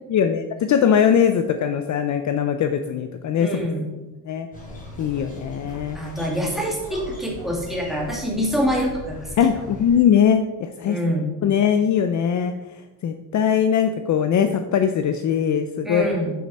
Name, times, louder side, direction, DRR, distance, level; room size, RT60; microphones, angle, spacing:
voice 1, 0.1-3.6 4.3-4.5 5.0-6.0 9.4-11.0 11.4-12.5 13.0-16.1, left 8 dB, 50° left, 8 dB, 0.6 m, -20 dB
voice 2, 3.4-3.8 5.9-9.3 10.9-11.3 15.8-16.3, equal, ahead, -4 dB, 2.3 m, -25 dB
sound 1, 4.5-10.0, left 1 dB, 20° left, 2.7 m, -39 dB
9.4 x 7.4 x 4.2 m, 1.1 s
cardioid pair, 165°, 39 cm